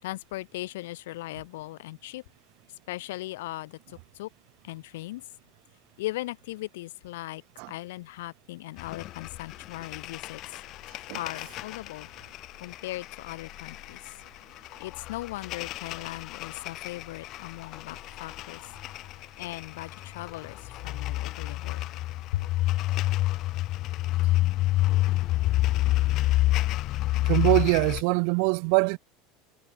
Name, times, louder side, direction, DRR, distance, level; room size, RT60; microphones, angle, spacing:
voice 1, 0.0-2.2 2.9-4.3 4.6-5.3 6.0-7.4 7.7-10.4 11.1-12.1 12.6-14.0 14.8-18.6 19.4-21.8 22.3-22.5, left 17 dB, 80° left, 5.6 m, -38 dB
sound 1, 8.8-28.0, left 16 dB, 50° left, 1.0 m, -29 dB
voice 2, 27.2-29.0, right 40 dB or more, 65° right, 1.6 m, -23 dB
supercardioid pair, 105°, 0 cm